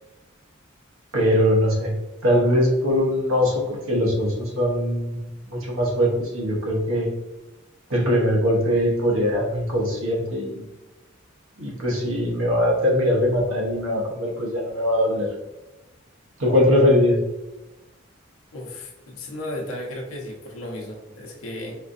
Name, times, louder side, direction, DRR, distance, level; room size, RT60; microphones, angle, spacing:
voice 1, 1.1-1.9 2.2-5.2 5.5-7.1 7.9-10.7 11.6-15.3 16.4-17.2, equal, 80° right, -2 dB, 0.9 m, -21 dB
voice 2, 18.5-21.8, left 1 dB, 90° left, -1 dB, 0.7 m, -34 dB
4.2 x 2.5 x 2.5 m, 1.1 s
head